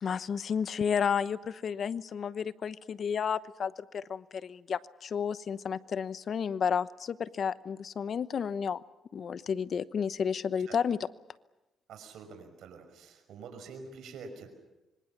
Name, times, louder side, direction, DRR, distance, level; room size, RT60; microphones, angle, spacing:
voice 1, 0.0-8.8 9.1-11.1, left 7 dB, 55° left, 15 dB, 1.0 m, -32 dB
voice 2, 11.9-14.5, right 4 dB, 75° right, 6 dB, 5.8 m, -46 dB
26.0 x 24.5 x 7.3 m, 1.0 s
cardioid pair, 90°, 0 cm